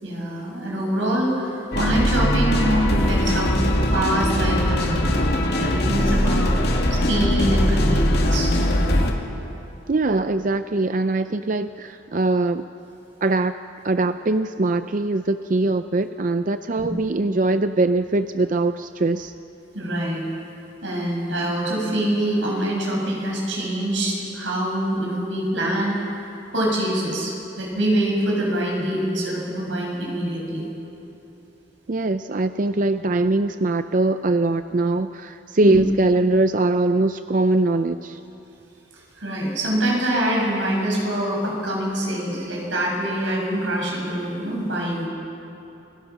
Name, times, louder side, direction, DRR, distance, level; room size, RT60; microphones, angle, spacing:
voice 1, 0.0-3.5 3.9-6.5 6.9-8.5 16.8-16.9 19.7-20.2 20.8-26.1 26.5-30.6 35.6-35.8 39.2-45.1, right 1 dB, 90° right, -2 dB, 7.0 m, -25 dB
sound 1, 1.7-9.1, left 1 dB, 55° left, 2.3 m, -20 dB
voice 2, 9.9-12.6 13.2-13.6 13.8-19.3 31.9-38.2, right 2 dB, 45° right, 10 dB, 0.5 m, -22 dB
29.0 x 21.5 x 6.0 m, 3.0 s
head